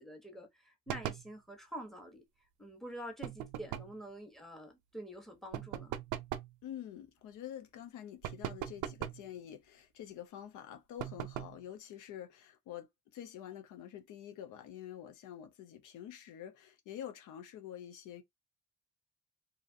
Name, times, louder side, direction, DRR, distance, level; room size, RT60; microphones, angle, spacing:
voice 1, 0.0-2.2 2.6-6.0, equal, ahead, 1.0 m, -47 dB
sound 1, 0.9-1.3 3.2-4.0 5.5-6.6 8.2-9.3 11.0-11.6, right 11 dB, 85° right, 0.5 m, -40 dB
voice 2, 6.6-18.2, left 10 dB, 85° left, 0.6 m, -47 dB
2.8 x 2.4 x 2.6 m
cardioid pair, 90°, 30 cm